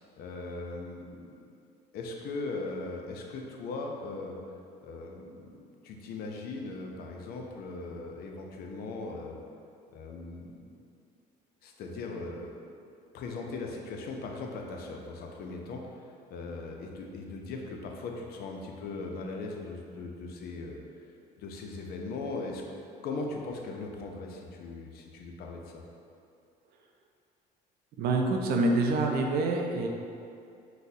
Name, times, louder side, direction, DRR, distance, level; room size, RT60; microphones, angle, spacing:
voice 1, 0.2-1.4 1.9-4.4 4.8-5.6 5.8-9.4 9.9-10.7 11.6-12.6 13.1-16.0 16.3-20.8 21.4-22.6 23.0-25.8, left 3 dB, 65° left, 1 dB, 0.4 m, -39 dB
voice 2, 28.0-29.9, right 2 dB, 65° right, 2 dB, 0.4 m, -26 dB
3.9 x 2.1 x 2.6 m, 2.5 s
cardioid pair, 110°, 17 cm